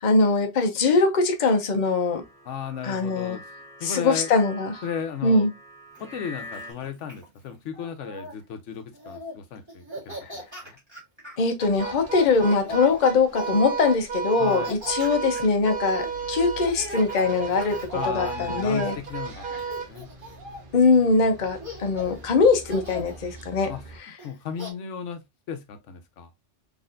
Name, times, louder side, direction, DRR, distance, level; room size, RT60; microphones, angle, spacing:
voice 1, 0.0-2.2 2.8-3.4 3.8-4.8 5.2-5.5 10.2-10.3 11.4-18.9 20.7-23.7, left 4 dB, 45° left, 0.8 m, -22 dB
sound 1, 1.8-6.7, left 1 dB, 5° left, 1.0 m, -44 dB
voice 2, 2.5-3.4 3.8-4.3 4.8-5.5 6.0-10.8 14.4-14.8 17.9-20.1 23.7-23.8 24.2-25.2 25.5-26.3, left 7 dB, 85° left, 1.0 m, -35 dB
Laughter, 5.9-8.3 8.9-9.4 9.7-11.4 12.2-13.7 14.3-19.2 19.6-20.5 21.2-21.3 21.6-22.3 22.7-23.2 24.2-24.7, equal, 25° right, 1.6 m, -41 dB
sound 2, 11.6-24.0, right 5 dB, 50° right, 1.0 m, -34 dB
4.1 x 3.2 x 2.4 m
omnidirectional pair, 1.2 m